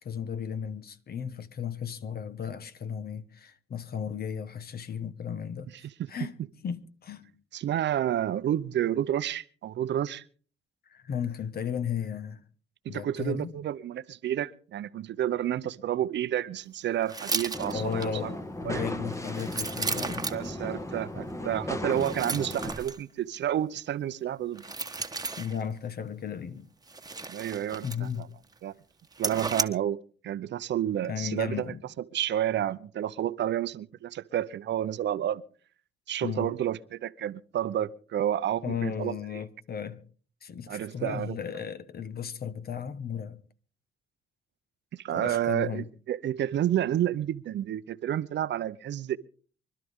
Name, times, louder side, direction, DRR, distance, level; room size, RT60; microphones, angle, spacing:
voice 1, 0.0-5.7 6.1-6.3 6.6-7.3 10.9-12.4 12.9-13.5 17.7-20.3 25.4-26.7 27.8-28.3 31.1-31.8 36.2-36.5 38.6-40.0 40.4-43.4 45.1-45.9, left 7 dB, 50° left, 1.2 m, -35 dB
voice 2, 7.5-10.2 12.8-18.3 18.6-18.8 20.3-24.6 27.3-28.3 28.6-28.7 29.2-30.0 30.2-31.7 32.1-35.4 36.1-39.1 40.7-41.4 44.9-49.2, right 11 dB, 65° right, 0.7 m, -30 dB
sound 1, 17.1-18.1 19.1-20.5 21.9-23.0 24.5-25.6 26.9-28.2 28.5-28.6 29.1-29.6, right 4 dB, 20° right, 1.3 m, -34 dB
sound 2, 17.5-22.8, left 1 dB, 15° left, 1.3 m, -36 dB
25.0 x 12.5 x 3.6 m
cardioid pair, 90°, 20 cm